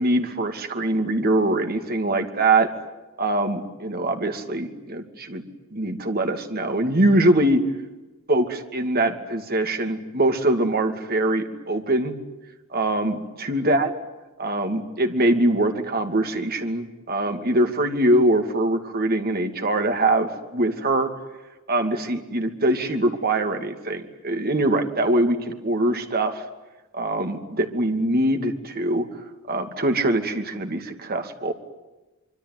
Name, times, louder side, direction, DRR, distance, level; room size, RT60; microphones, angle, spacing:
voice 1, 0.0-2.7 3.2-5.4 5.7-7.6 8.3-12.1 12.7-13.9 14.4-21.1 21.7-26.4 26.9-29.0 29.5-31.5, right 1 dB, 45° right, 6 dB, 2.6 m, -23 dB
25.5 x 24.5 x 9.6 m, 1.1 s
head